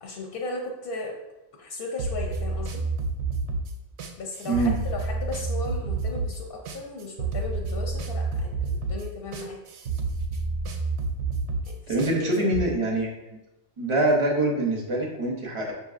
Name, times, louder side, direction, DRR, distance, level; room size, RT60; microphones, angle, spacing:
voice 1, 0.0-1.1 1.6-2.8 4.2-9.6 11.7-12.5, left 2 dB, 60° left, 1 dB, 0.7 m, -36 dB
sound 1, 2.0-12.6, right 3 dB, 70° right, 0.8 m, -29 dB
voice 2, 11.9-13.1 13.8-15.7, right 1 dB, 35° right, -2 dB, 0.6 m, -24 dB
5.8 x 2.7 x 2.4 m, 1.0 s
omnidirectional pair, 1.3 m